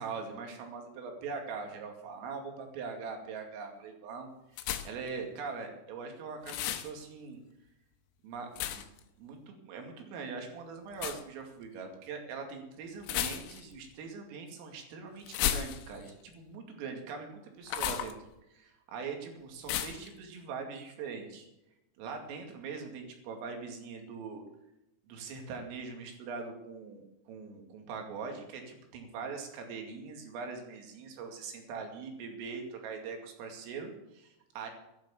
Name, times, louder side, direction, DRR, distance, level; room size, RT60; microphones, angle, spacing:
voice 1, 0.0-7.4 8.2-8.8 9.2-18.2 18.5-21.5 22.0-24.4 25.1-34.7, right 5 dB, 75° right, 3 dB, 4.9 m, -42 dB
sound 1, 4.6-5.1 6.5-6.9 8.6-9.0 10.9-11.2 13.0-13.7 15.3-16.1 17.7-18.1 19.7-20.1, left 11 dB, 85° left, 3.6 m, -33 dB
12.5 x 12.0 x 7.3 m, 0.90 s
omnidirectional pair, 5.9 m